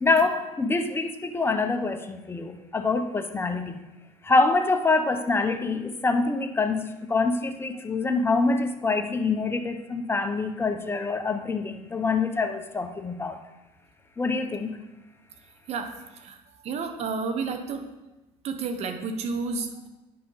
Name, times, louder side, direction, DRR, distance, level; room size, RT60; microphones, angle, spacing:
voice 1, 0.0-3.8 4.2-13.4 14.2-14.8, left 3 dB, 15° left, 7 dB, 0.9 m, -25 dB
voice 2, 16.6-17.9 18.4-19.9, right 4 dB, 55° right, 7 dB, 1.1 m, -31 dB
9.9 x 5.8 x 4.0 m, 1.0 s
supercardioid pair, 90°, 13 cm